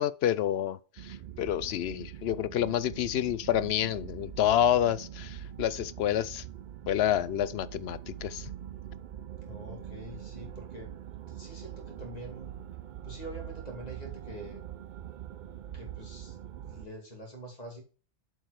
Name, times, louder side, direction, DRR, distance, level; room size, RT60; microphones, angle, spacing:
voice 1, 0.0-6.4 6.9-8.5, left 11 dB, 70° left, 0.8 m, -28 dB
sound 1, 1.0-16.9, right 10 dB, 55° right, 0.5 m, -43 dB
voice 2, 9.4-10.9 11.3-12.5 13.0-14.6 15.7-17.8, right 1 dB, 35° left, 2.6 m, -45 dB
7.6 x 4.8 x 4.7 m
omnidirectional pair, 1.2 m